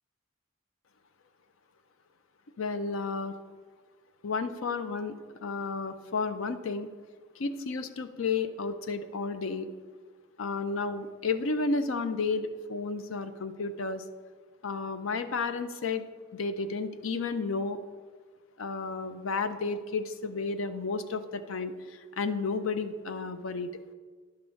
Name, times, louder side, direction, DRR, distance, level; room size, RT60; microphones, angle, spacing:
voice 1, 2.6-3.3 4.2-5.1 5.4-6.9 7.4-9.7 10.4-14.0 14.6-16.0 16.3-17.8 18.6-23.7, left 4 dB, 75° left, 10 dB, 0.6 m, -32 dB
11.0 x 3.9 x 6.9 m, 1.5 s
head